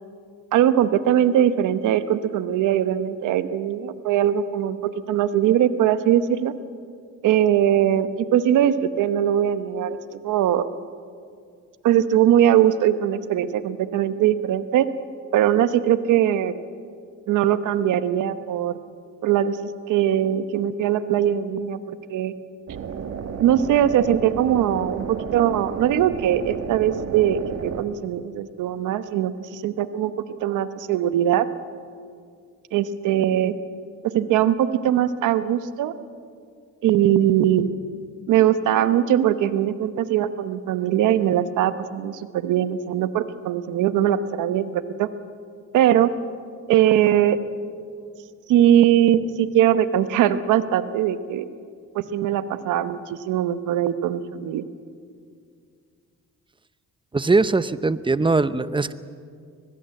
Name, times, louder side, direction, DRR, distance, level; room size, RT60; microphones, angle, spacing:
voice 1, 0.5-4.8 5.1-6.5 7.2-10.7 11.8-14.9 15.3-16.5 17.3-18.8 19.2-19.6 19.9-22.3 23.4-30.1 30.4-31.5 32.7-33.6 34.1-35.9 36.8-37.7 38.3-45.1 45.7-46.1 46.7-47.4 48.5-51.5 51.9-54.6, right 11 dB, 90° right, 12 dB, 1.1 m, -21 dB
sound 1, 22.7-27.8, right 7 dB, 60° right, 1.6 m, -32 dB
voice 2, 57.1-58.9, right 3 dB, 15° right, 14 dB, 0.8 m, -21 dB
23.0 x 20.5 x 7.8 m, 2.3 s
cardioid pair, 90°, 30 cm